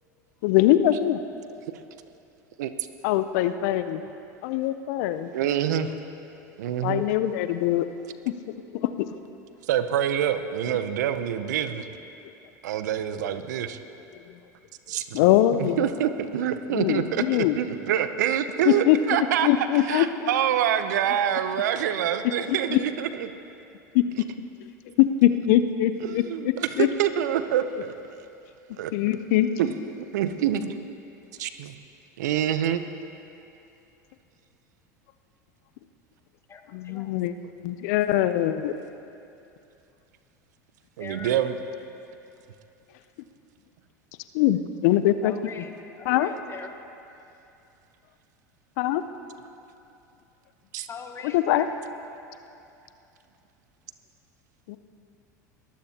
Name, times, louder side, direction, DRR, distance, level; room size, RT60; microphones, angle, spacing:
voice 1, 0.4-1.2 3.0-4.0 4.4-5.3 6.8-7.9 8.8-9.1 15.1-15.8 16.7-17.6 18.7-19.0 19.4-20.3 22.7-22.8 23.9-24.0 25.0-26.9 28.9-29.5 36.7-37.3 37.6-38.8 44.3-45.3 46.1-46.3 48.8-49.0 51.3-51.7 54.7-54.8, left 13 dB, 65° left, 11 dB, 0.6 m, -22 dB
voice 2, 5.3-5.9 6.6-7.1 9.7-11.9 12.6-13.8 14.9-15.3 15.6-23.3 26.1-27.9 28.8-28.9 29.6-29.7 30.1-30.8 31.4-31.7 32.2-32.8 41.0-41.5 50.7-50.9, right 10 dB, 75° right, 10 dB, 0.7 m, -26 dB
voice 3, 36.5-37.1 41.0-41.4 45.2-45.7 46.0-46.7 50.9-51.8, left 5 dB, 30° left, 5 dB, 1.4 m, -41 dB
21.5 x 14.5 x 2.9 m, 2.7 s
hypercardioid pair, 85°, 9 cm